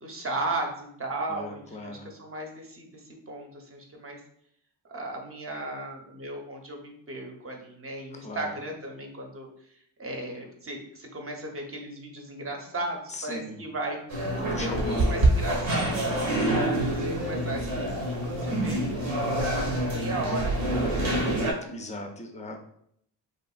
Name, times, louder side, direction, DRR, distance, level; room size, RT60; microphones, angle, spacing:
voice 1, 0.0-4.2 4.9-9.5 10.0-14.3 14.6-18.8 19.3-21.4, right 2 dB, 25° right, 2 dB, 0.8 m, -36 dB
voice 2, 1.3-2.1 8.1-8.5 13.1-13.7 14.3-15.0 21.7-22.6, left 2 dB, 15° left, 4 dB, 0.5 m, -38 dB
sound 1, 14.1-21.5, right 1 dB, 75° right, 1.0 m, -26 dB
2.9 x 2.4 x 2.4 m, 0.68 s
hypercardioid pair, 55°, 50 cm